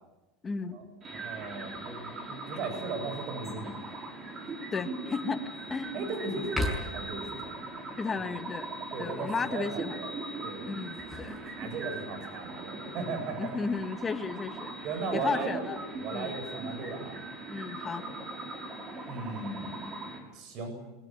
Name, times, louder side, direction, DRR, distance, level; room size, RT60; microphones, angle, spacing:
voice 1, 0.4-0.8 4.7-5.4 5.7-6.0 8.0-8.7 9.0-10.0 10.7-11.4 13.0-14.7 15.1-15.8 16.1-16.3 17.5-18.0, left 4 dB, 20° left, 8 dB, 1.9 m, -34 dB
sound 1, 1.0-20.2, right 2 dB, 30° right, 6.0 m, -40 dB
voice 2, 1.1-3.7 5.9-7.6 8.2-8.3 8.9-10.2 10.4-10.7 11.6-13.5 14.8-15.6 16.0-17.2 19.1-20.7, right 4 dB, 45° right, 6 dB, 7.9 m, -37 dB
sound 2, 3.4-3.9 4.5-4.6 5.1-5.9 6.4-7.2 10.7-12.1 13.4-14.0, left 1 dB, 5° right, 6.3 m, -38 dB
23.5 x 20.0 x 9.5 m, 1.0 s
supercardioid pair, 140°, 0 cm